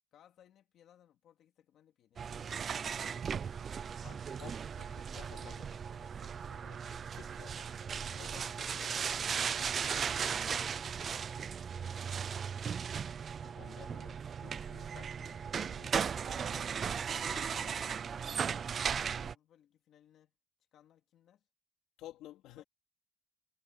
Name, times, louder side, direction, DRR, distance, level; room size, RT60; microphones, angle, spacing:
voice 1, 0.1-3.0 8.5-12.4 17.4-20.3 20.7-21.5 22.6-22.7, left 10 dB, 55° left, 2.3 m, -65 dB
sound 1, 2.2-19.3, right 7 dB, 30° right, 0.4 m, -37 dB
voice 2, 4.0-9.2 13.4-16.8 17.3-17.9 22.0-22.6, left 14 dB, 80° left, 3.2 m, -55 dB
cardioid pair, 170°, 0 cm